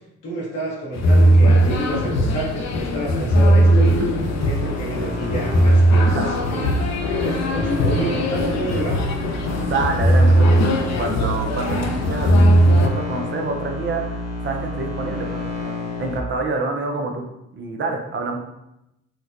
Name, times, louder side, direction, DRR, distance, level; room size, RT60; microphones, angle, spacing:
voice 1, 0.2-4.0 4.4-9.0, right 2 dB, 90° left, -6 dB, 1.1 m, -29 dB
sound 1, 0.9-12.9, right 1 dB, 60° left, 0.6 m, -18 dB
sound 2, 2.8-16.2, left 2 dB, 35° left, 1.0 m, -31 dB
voice 2, 9.6-17.2 17.5-18.4, right 3 dB, 40° right, 2 dB, 0.6 m, -27 dB
4.3 x 2.1 x 2.5 m, 0.86 s
cardioid pair, 90°, 30 cm